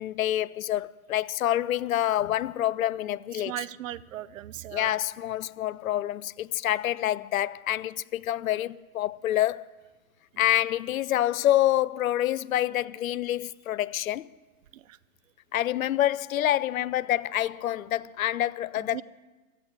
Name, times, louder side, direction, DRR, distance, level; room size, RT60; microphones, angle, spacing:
voice 1, 0.0-3.5 4.7-9.6 10.4-14.3 15.5-19.0, left 13 dB, 75° left, 0.6 m, -27 dB
voice 2, 3.4-5.0 10.3-10.4 14.7-15.0 18.8-19.0, right 13 dB, 65° right, 0.7 m, -38 dB
15.0 x 7.5 x 9.9 m
hypercardioid pair, 125°, 41 cm